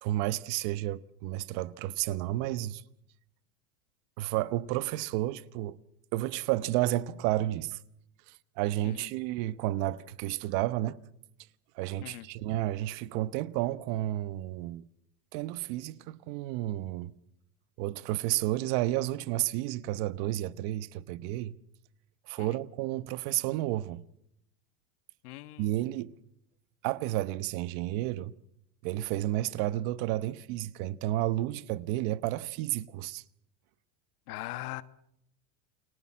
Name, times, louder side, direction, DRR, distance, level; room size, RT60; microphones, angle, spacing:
voice 1, 0.0-2.8 4.2-5.8 6.1-7.8 8.6-11.0 11.7-14.9 15.3-17.1 17.8-21.6 22.3-24.0 25.6-26.1 26.8-28.3 28.8-33.2, right 15 dB, 60° right, 1.2 m, -31 dB
voice 2, 25.2-25.7 34.3-34.8, left 17 dB, 75° left, 1.4 m, -40 dB
29.5 x 20.5 x 7.5 m
supercardioid pair, 130°, 45 cm